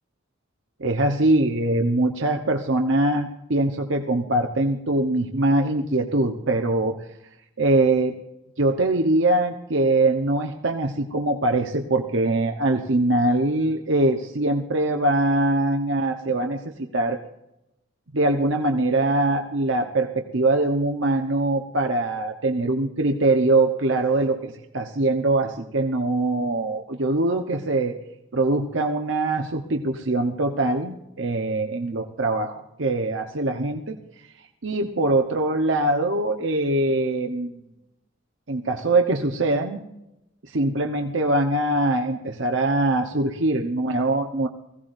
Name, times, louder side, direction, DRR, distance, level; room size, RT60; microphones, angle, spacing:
voice 1, 0.8-7.0 7.6-8.2 8.6-17.2 18.1-28.0 28.3-34.0 34.6-37.5 38.5-39.8 40.4-44.5, right 2 dB, 65° right, 4 dB, 1.0 m, -22 dB
20.5 x 16.0 x 2.6 m, 0.87 s
head